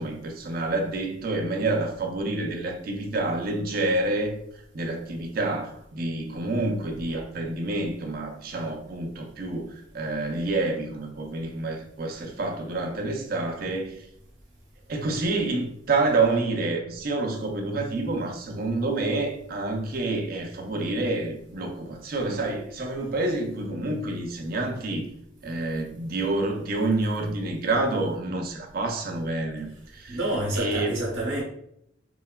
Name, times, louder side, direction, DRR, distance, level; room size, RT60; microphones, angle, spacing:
voice 1, 0.0-4.4 4.7-14.1 14.9-25.1 25.4-30.2 30.5-31.0, right 2 dB, 50° right, 0.4 m, -28 dB
voice 2, 30.1-31.4, right 1 dB, 75° right, 0.7 m, -28 dB
3.0 x 2.1 x 2.2 m
head